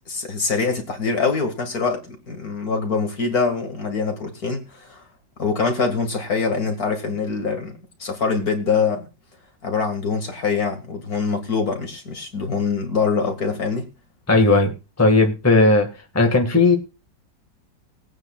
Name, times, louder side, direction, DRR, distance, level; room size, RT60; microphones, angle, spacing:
voice 1, 0.1-5.0 5.4-9.1 9.6-13.9, left 5 dB, 50° left, 2.5 m, -24 dB
voice 2, 14.3-15.9 16.1-16.8, left 2 dB, 10° left, 1.7 m, -16 dB
21.0 x 9.2 x 2.4 m
omnidirectional pair, 2.0 m